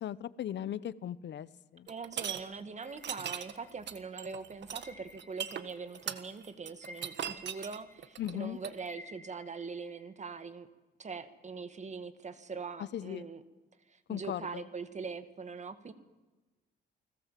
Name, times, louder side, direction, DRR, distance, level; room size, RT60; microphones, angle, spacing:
voice 1, 0.0-1.5 1.7-1.9 8.2-8.6 12.8-13.3 14.1-14.6, left 10 dB, 65° left, 17 dB, 0.9 m, -37 dB
voice 2, 1.9-10.7 11.0-13.4 13.9-15.9, right 5 dB, 35° right, 11 dB, 2.1 m, -42 dB
sound 1, 1.9-2.4 2.9-8.8, right 9 dB, 60° right, 1.6 m, -39 dB
sound 2, 2.8-4.1 4.8-6.1 6.4-10.1, left 2 dB, 10° left, 4.1 m, -55 dB
29.5 x 20.5 x 7.6 m, 1.2 s
cardioid pair, 90°, 20 cm